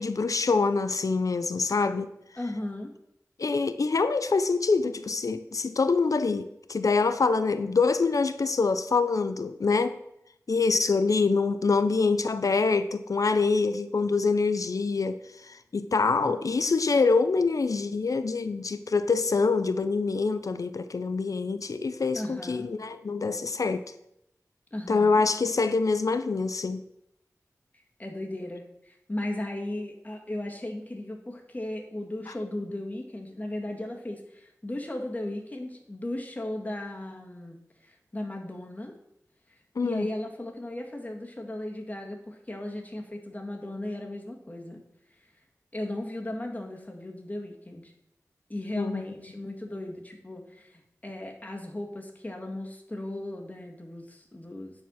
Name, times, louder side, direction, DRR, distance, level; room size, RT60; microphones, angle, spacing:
voice 1, 0.0-2.1 3.4-10.0 10.5-23.8 24.9-26.8 39.8-40.1 48.7-49.0, left 4 dB, 70° left, 0.5 m, -25 dB
voice 2, 2.4-2.9 22.1-22.7 24.7-25.2 28.0-39.0 39.8-44.8 45.7-47.9 48.5-54.8, left 1 dB, 25° left, 1.7 m, -36 dB
9.3 x 4.4 x 6.2 m
wide cardioid pair, 55°, 6 cm